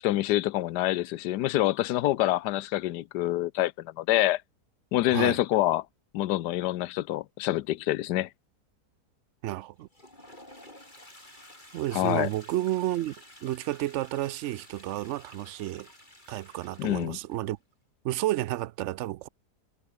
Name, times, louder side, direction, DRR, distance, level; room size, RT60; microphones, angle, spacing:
voice 1, 0.0-4.4 4.9-5.9 6.1-8.3 11.9-12.3 16.8-17.2, left 15 dB, 85° left, 1.3 m, -26 dB
voice 2, 5.1-5.4 9.4-9.9 11.7-13.1 13.4-15.9 16.3-17.6 18.0-19.3, right 15 dB, 80° right, 0.6 m, -31 dB
Toilet flush, 9.8-17.4, left 1 dB, 25° left, 7.5 m, -52 dB
omnidirectional pair, 1.8 m